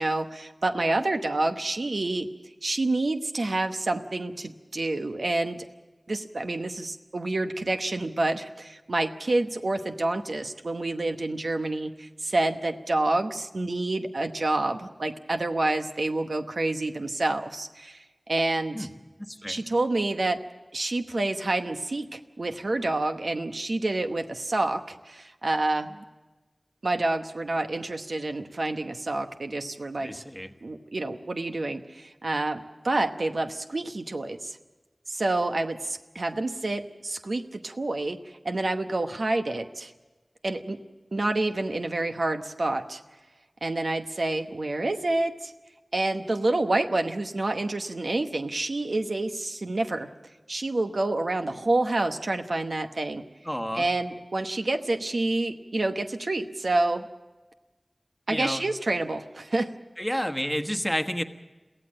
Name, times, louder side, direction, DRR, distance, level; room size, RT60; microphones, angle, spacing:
voice 1, 0.0-2.3 2.6-5.7 6.1-18.9 19.5-20.4 20.7-26.0 26.8-30.1 30.6-34.6 35.1-38.2 38.4-39.9 40.4-40.8 41.1-43.0 43.6-45.5 45.9-50.1 50.5-53.2 53.7-57.1 58.3-59.7, right 2 dB, 80° right, 6 dB, 1.0 m, -28 dB
voice 2, 19.2-19.6 30.0-30.5 53.4-53.9 58.3-58.6 60.0-61.2, equal, 5° left, 6 dB, 1.3 m, -30 dB
23.0 x 16.0 x 7.6 m, 1.2 s
wide cardioid pair, 50°, 0 cm